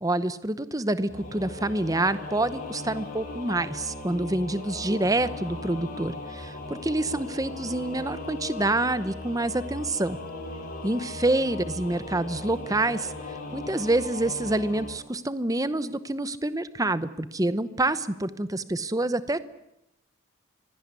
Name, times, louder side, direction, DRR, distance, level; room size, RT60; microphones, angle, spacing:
voice 1, 0.0-10.2 10.8-13.1 13.5-19.4, right 2 dB, 15° right, 14 dB, 0.9 m, -27 dB
Singing / Musical instrument, 1.1-14.9, left 2 dB, 40° left, 5.0 m, -38 dB
25.0 x 18.0 x 9.7 m, 0.88 s
head